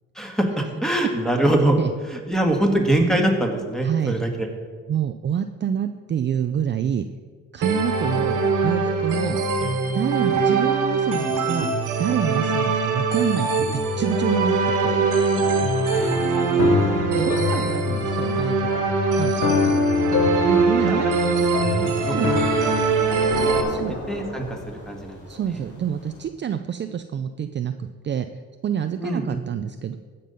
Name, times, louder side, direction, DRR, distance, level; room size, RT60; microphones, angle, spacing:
voice 1, 0.1-1.8 2.1-4.5 15.9-16.2 20.6-23.2 23.5-23.7 24.1-25.2 25.5-25.6 29.0-29.2, right 1 dB, ahead, 2 dB, 1.8 m, -24 dB
voice 2, 3.8-4.2 4.9-7.0 7.5-8.4 8.6-9.4 9.9-11.7 12.0-14.6 14.8-15.1 17.1-18.7 19.1-19.7 20.5-21.1 22.1-22.3 23.7-23.9 25.3-28.3 28.6-30.0, right 9 dB, 40° right, 8 dB, 0.5 m, -27 dB
sound 1, 7.6-23.6, right 4 dB, 85° right, 1.6 m, -22 dB
sound 2, 15.4-22.8, left 4 dB, 70° left, 1.2 m, -26 dB
sound 3, 21.2-26.2, left 1 dB, 50° left, 3.4 m, -36 dB
15.0 x 5.4 x 5.5 m, 1.5 s
cardioid pair, 90°, 30 cm